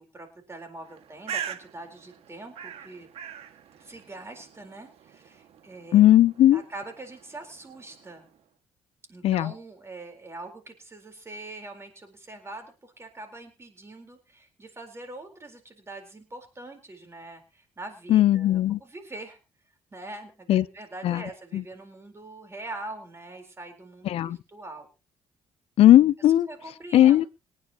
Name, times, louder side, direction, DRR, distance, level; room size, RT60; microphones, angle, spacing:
voice 1, 0.0-3.1 3.8-6.0 6.5-8.3 9.1-19.4 19.9-24.9 26.5-27.2, right 2 dB, 25° right, 4.2 m, -43 dB
Bird, 0.8-8.4, right 8 dB, 75° right, 2.0 m, -42 dB
voice 2, 5.9-6.6 9.2-9.5 18.1-18.8 20.5-20.6 21.0-21.2 21.5-21.6 24.1-24.4 25.8-26.5 26.9-27.3, left 13 dB, 70° left, 0.7 m, -17 dB
26.0 x 9.8 x 3.0 m
cardioid pair, 80°, 10 cm